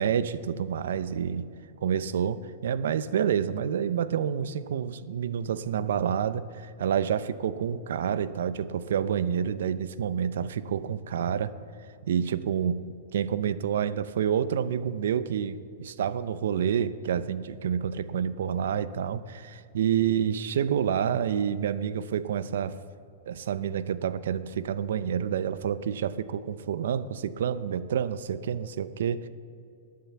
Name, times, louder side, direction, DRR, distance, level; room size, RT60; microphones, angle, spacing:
voice 1, 0.0-1.5 1.8-11.5 12.0-12.8 13.1-22.8 23.3-29.3, right 8 dB, 65° right, 14 dB, 0.6 m, -28 dB
20.0 x 7.6 x 7.1 m, 2.5 s
supercardioid pair, 180°, 0 cm